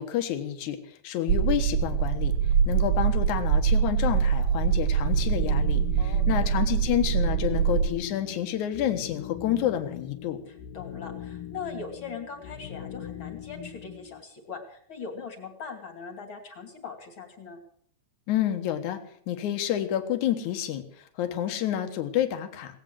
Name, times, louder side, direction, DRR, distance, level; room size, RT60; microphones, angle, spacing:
voice 1, 0.0-2.3 2.7-10.4 18.3-19.0 19.3-22.8, left 11 dB, 70° left, 7 dB, 2.7 m, -29 dB
sound 1, 1.3-7.9, right 7 dB, 75° right, 1.7 m, -24 dB
sound 2, 5.0-14.2, left 10 dB, 85° left, 2.6 m, -41 dB
voice 2, 6.0-6.5 10.4-17.6, left 5 dB, 40° left, 5 dB, 3.0 m, -40 dB
18.0 x 9.1 x 7.7 m, 0.63 s
omnidirectional pair, 3.8 m